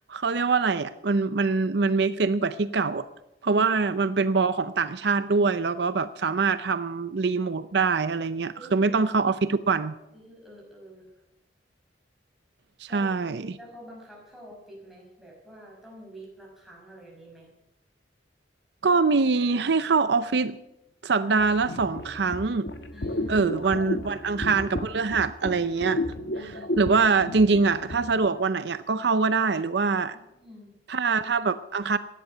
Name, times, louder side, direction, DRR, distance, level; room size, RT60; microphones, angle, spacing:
voice 1, 0.0-3.1 3.4-9.9 12.8-13.6 18.8-20.6 21.0-22.7 23.3-26.0 26.8-30.2 30.9-32.0, right 4 dB, 65° right, 13 dB, 0.6 m, -24 dB
voice 2, 8.5-8.9 10.1-11.1 12.9-17.5 22.9-23.5 26.3-27.0 30.1-30.7, equal, ahead, -3 dB, 5.5 m, -47 dB
sound 1, 21.4-28.3, left 1 dB, 65° left, 1.3 m, -34 dB
17.0 x 11.0 x 6.7 m, 0.88 s
head